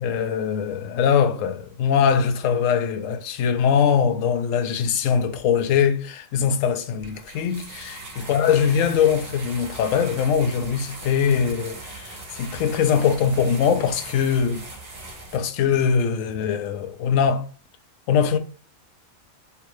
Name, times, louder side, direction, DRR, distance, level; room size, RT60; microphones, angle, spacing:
voice 1, 0.0-14.6 15.3-17.4 18.1-18.4, left 7 dB, 70° left, 0.9 m, -22 dB
sound 1, 7.0-15.4, right 2 dB, 70° right, 1.4 m, -39 dB
3.5 x 2.4 x 3.0 m
omnidirectional pair, 1.5 m